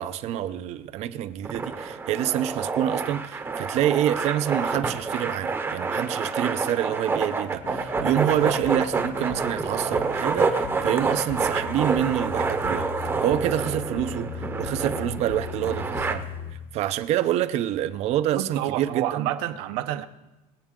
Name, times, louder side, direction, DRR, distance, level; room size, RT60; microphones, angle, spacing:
voice 1, 0.0-12.9 13.2-16.2 16.7-19.3, right 11 dB, 40° right, 0.6 m, -27 dB
sound 1, 1.4-16.1, right 4 dB, 15° right, 0.9 m, -28 dB
sound 2, 7.5-16.5, left 6 dB, 80° left, 1.8 m, -38 dB
voice 2, 18.3-20.1, right 13 dB, 70° right, 0.9 m, -29 dB
23.5 x 8.4 x 3.7 m
cardioid pair, 170°, 16 cm